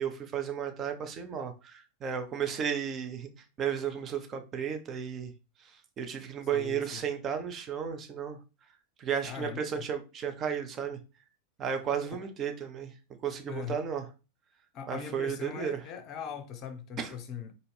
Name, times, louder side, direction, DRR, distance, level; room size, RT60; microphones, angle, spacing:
voice 1, 0.0-3.3 3.6-5.3 6.0-8.4 9.0-11.0 11.6-12.9 13.2-14.1 14.9-15.8 17.0-17.1, right 8 dB, 30° right, 0.7 m, -33 dB
voice 2, 6.5-7.0 9.2-9.8 12.0-12.3 13.5-13.8 14.7-17.5, left 7 dB, 35° left, 0.7 m, -40 dB
4.1 x 2.6 x 3.2 m
figure-of-eight pair, 90°, 0 cm